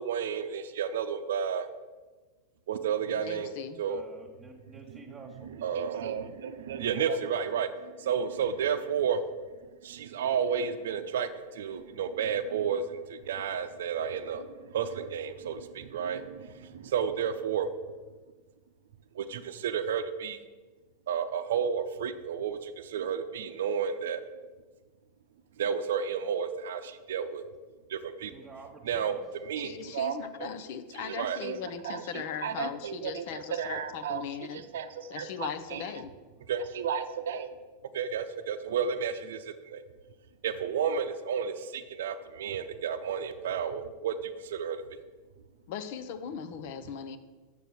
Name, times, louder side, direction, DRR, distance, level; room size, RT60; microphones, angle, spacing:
voice 1, 0.0-1.7 2.7-4.0 5.4-9.2 9.8-17.7 19.1-20.4 21.1-24.2 25.6-27.4 27.9-28.3 28.9-30.5 30.9-31.6 31.8-34.3 34.5-35.8 36.5-37.5 37.9-39.8 40.4-44.8, right 7 dB, 70° right, 10 dB, 0.6 m, -32 dB
voice 2, 3.1-3.8 29.6-34.6 35.1-36.1 45.7-47.2, left 7 dB, 60° left, 10 dB, 0.7 m, -39 dB
voice 3, 3.9-5.5 28.3-29.2 29.8-30.0, right 3 dB, 20° right, 0 dB, 1.4 m, -49 dB
6.8 x 6.7 x 6.3 m, 1.3 s
hypercardioid pair, 95°, 0 cm